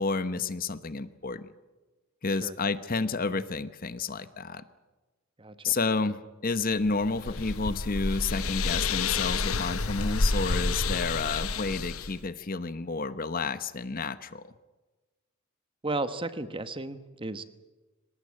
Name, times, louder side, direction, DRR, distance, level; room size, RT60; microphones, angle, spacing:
voice 1, 0.0-1.5 2.2-4.6 5.6-14.5, left 4 dB, 40° left, 13 dB, 0.9 m, -30 dB
voice 2, 5.4-5.7 15.8-17.4, right 2 dB, 25° right, 12 dB, 1.1 m, -34 dB
sound 1, 6.8-12.2, left 3 dB, 80° left, 1.1 m, -29 dB
24.5 x 19.0 x 8.7 m, 1.2 s
head